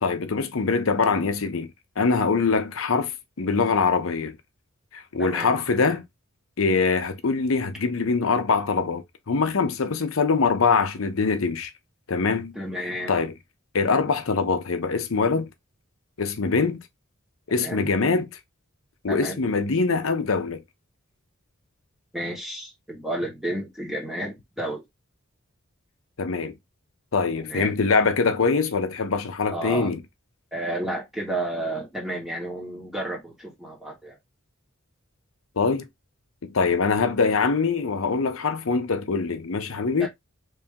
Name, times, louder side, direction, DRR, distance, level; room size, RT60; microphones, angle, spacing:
voice 1, 0.0-4.4 4.9-6.0 6.6-11.7 12.1-12.6 13.1-13.3 13.7-15.5 16.2-16.8 17.5-18.3 19.0-20.6 26.2-26.5 27.1-30.0 35.6-35.9 36.4-40.1, left 4 dB, 75° left, 0.7 m, -23 dB
voice 2, 5.2-5.5 12.5-13.1 17.5-17.9 19.1-19.5 22.1-24.8 27.5-27.7 29.5-29.9 30.5-34.2 40.0-40.1, right 1 dB, ahead, 1.3 m, -31 dB
3.2 x 2.9 x 3.5 m
head